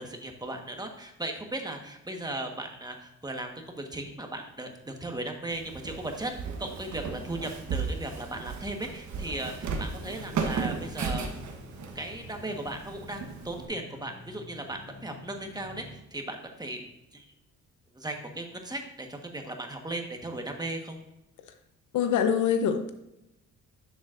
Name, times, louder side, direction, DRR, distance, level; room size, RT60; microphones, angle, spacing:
voice 1, 0.0-6.3 6.6-11.3 11.9-15.8 16.1-16.8 17.1-17.2 17.9-21.0, right 1 dB, 15° right, 3 dB, 1.4 m, -37 dB
Walk footsteps, 5.5-13.6, right 5 dB, 70° right, 1.2 m, -35 dB
sound 1, 9.7-16.0, left 3 dB, 65° left, 3.3 m, -48 dB
voice 2, 21.9-22.9, left 7 dB, 80° left, 7 dB, 0.9 m, -24 dB
10.5 x 7.1 x 2.6 m, 0.88 s
cardioid pair, 90°, 30 cm